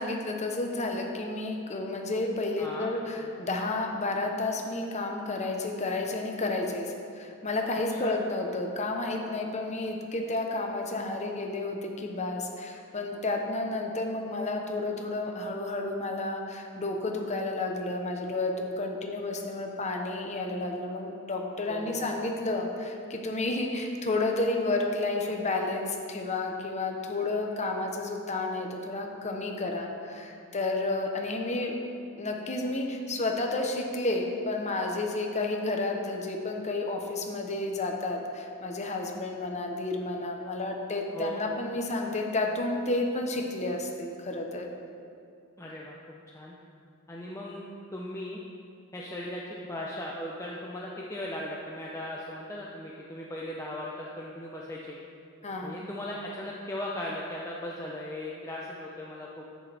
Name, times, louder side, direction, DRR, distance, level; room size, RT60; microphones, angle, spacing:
voice 1, 0.0-31.9 32.2-44.7 55.4-55.8, left 2 dB, 35° left, 2 dB, 0.9 m, -31 dB
voice 2, 2.6-2.9 8.0-8.1 21.7-22.1 41.1-41.4 45.6-46.0 46.3-46.5 47.1-47.6 47.9-48.4 48.9-55.0 55.6-59.4, left 1 dB, 15° left, -4 dB, 0.6 m, -37 dB
10.0 x 8.7 x 3.5 m, 2.4 s
head